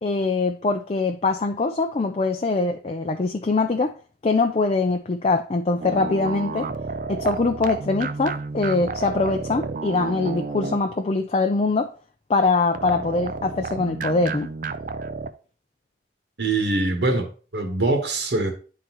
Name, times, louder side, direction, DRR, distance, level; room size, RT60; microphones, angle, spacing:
voice 1, 0.0-3.9 4.2-6.7 7.1-11.9 12.3-14.5, left 3 dB, 35° left, 0.4 m, -23 dB
sound 1, 5.8-11.1 12.7-15.3, right 4 dB, 50° right, 0.4 m, -31 dB
voice 2, 16.4-18.5, right 2 dB, 70° right, 1.3 m, -23 dB
10.5 x 3.8 x 3.0 m
head